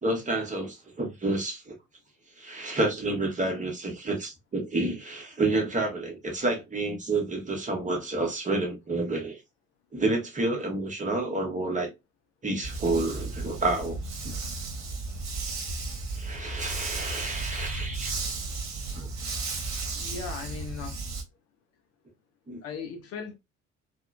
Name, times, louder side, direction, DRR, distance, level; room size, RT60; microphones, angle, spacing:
voice 1, 0.0-1.7 2.4-9.4 9.9-11.9 12.4-14.0 16.2-18.1 22.5-22.6, right 2 dB, 20° right, 0.9 m, -29 dB
Dog, 12.6-21.2, right 3 dB, 50° right, 0.9 m, -34 dB
voice 2, 19.9-21.0 22.6-23.3, left 5 dB, 45° left, 0.6 m, -37 dB
2.9 x 2.0 x 2.3 m
figure-of-eight pair, 50°, 35 cm